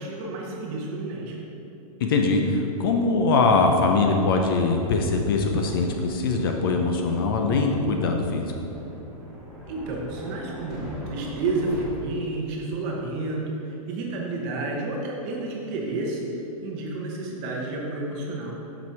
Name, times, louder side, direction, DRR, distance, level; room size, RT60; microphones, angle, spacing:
voice 1, 0.0-1.4 9.7-16.3 16.6-18.6, right 2 dB, 25° right, -1 dB, 0.8 m, -30 dB
voice 2, 2.0-8.5, left 3 dB, 40° left, 3 dB, 0.5 m, -22 dB
sound 1, 4.2-11.9, equal, 5° right, 1.3 m, -41 dB
6.2 x 5.9 x 4.5 m, 2.9 s
hypercardioid pair, 175°, 19 cm